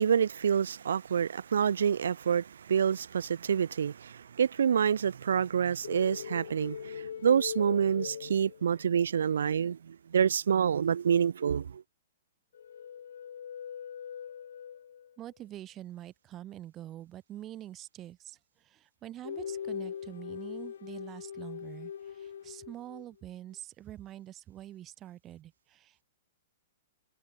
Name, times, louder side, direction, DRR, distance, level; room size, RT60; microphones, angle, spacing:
voice 1, 0.0-11.8, right 7 dB, 90° right, 0.9 m, -27 dB
sound 1, 5.8-9.0 12.5-15.1 19.2-23.1, left 8 dB, 75° left, 0.6 m, -41 dB
voice 2, 15.2-26.0, right 13 dB, 20° right, 1.2 m, -45 dB
hypercardioid pair, 170°, 0 cm